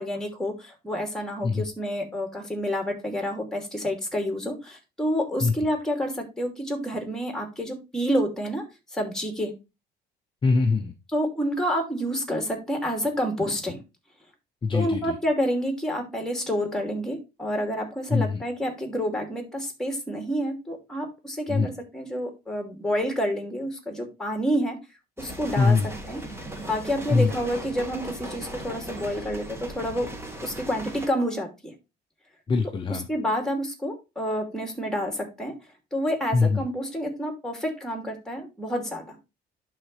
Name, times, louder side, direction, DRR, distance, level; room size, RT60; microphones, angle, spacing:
voice 1, 0.0-8.7 8.9-9.5 11.1-13.8 14.7-24.8 25.2-25.8 26.1-26.2 26.6-30.1 30.4-31.7 32.9-35.5 35.9-39.2, equal, 5° left, 4 dB, 2.6 m, -29 dB
voice 2, 10.4-10.9 14.6-15.1 18.1-18.4 21.5-21.7 25.6-25.9 27.1-27.3 32.5-33.1 36.3-36.6, left 4 dB, 30° left, 5 dB, 0.7 m, -22 dB
sound 1, 25.2-31.1, right 1 dB, 15° right, 1.7 m, -38 dB
11.0 x 3.9 x 3.2 m, 0.26 s
cardioid pair, 110°, 17 cm